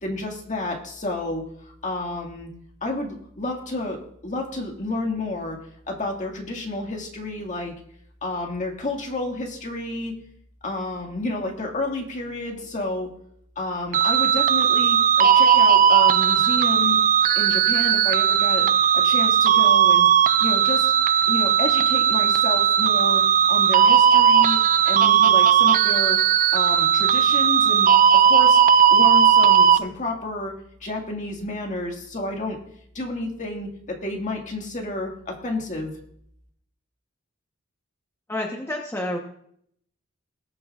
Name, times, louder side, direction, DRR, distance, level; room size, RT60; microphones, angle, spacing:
voice 1, 0.0-2.5 2.8-5.6 5.9-7.7 8.2-10.2 10.6-13.1 13.6-17.0 17.3-20.1 20.4-20.9 21.3-24.6 24.9-26.2 26.5-28.6 28.9-30.5 30.8-32.6 32.9-35.9, left 2 dB, 40° left, 1 dB, 1.9 m, -30 dB
sound 1, 13.9-29.8, right 8 dB, 40° right, 0.3 m, -17 dB
voice 2, 38.3-39.2, left 1 dB, 15° left, 0 dB, 1.0 m, -29 dB
20.0 x 7.6 x 2.4 m, 0.68 s
head